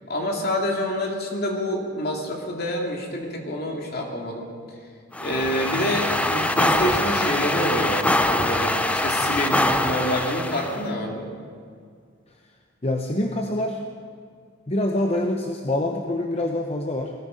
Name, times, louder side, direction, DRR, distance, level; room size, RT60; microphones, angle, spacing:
voice 1, 0.1-4.5 5.2-11.3, left 1 dB, 55° left, 1 dB, 2.4 m, -27 dB
sound 1, 5.1-10.8, left 1 dB, 5° left, 0.5 m, -23 dB
voice 2, 12.8-13.8 14.7-17.1, left 1 dB, 30° left, 3 dB, 0.8 m, -25 dB
19.5 x 13.5 x 5.2 m, 2.1 s
head